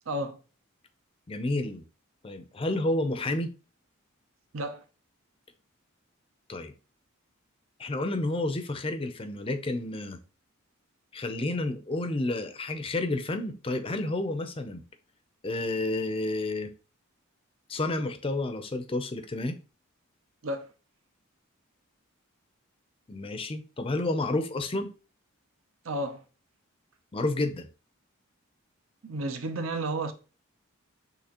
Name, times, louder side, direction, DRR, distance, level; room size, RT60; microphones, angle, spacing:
voice 1, 0.1-0.4 4.5-4.8 20.4-20.7 25.8-26.2 29.0-30.1, right 1 dB, 70° right, 0.6 m, -32 dB
voice 2, 1.3-1.8 2.2-3.5 6.5-6.7 7.8-10.2 11.1-14.8 15.4-16.7 17.7-19.6 23.1-24.9 27.1-27.7, left 2 dB, 25° left, 0.5 m, -30 dB
6.5 x 2.8 x 2.9 m
head